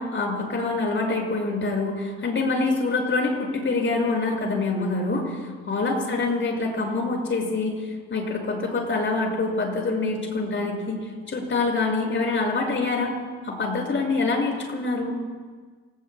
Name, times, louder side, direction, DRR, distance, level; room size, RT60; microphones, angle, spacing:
voice 1, 0.0-11.0 11.3-13.1 13.4-15.2, left 3 dB, 40° left, 0 dB, 6.4 m, -25 dB
28.5 x 19.5 x 2.3 m, 1.5 s
hypercardioid pair, 60°, 29 cm